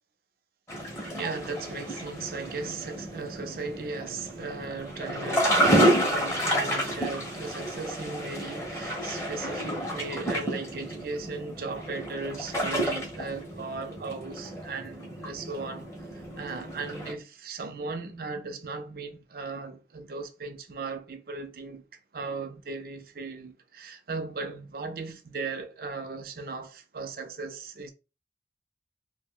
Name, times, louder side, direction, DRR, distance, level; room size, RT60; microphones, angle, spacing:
sound 1, 0.7-17.1, equal, 15° left, 0.7 m, -30 dB
voice 1, 1.1-21.8 22.1-27.9, right 4 dB, 55° right, 0.5 m, -37 dB
2.5 x 2.1 x 3.6 m
head